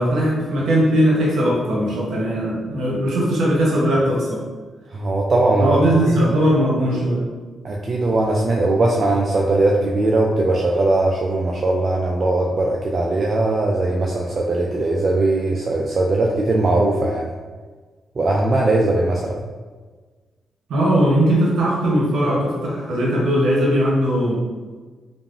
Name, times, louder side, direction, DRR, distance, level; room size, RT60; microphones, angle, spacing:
voice 1, 0.0-4.4 5.6-7.3 20.7-24.4, equal, 75° right, -4 dB, 0.8 m, -19 dB
voice 2, 4.9-5.8 6.1-6.3 7.6-17.3 18.2-19.4, right 2 dB, 50° right, -1 dB, 0.3 m, -19 dB
3.3 x 2.0 x 2.4 m, 1.4 s
supercardioid pair, 50°, 0 cm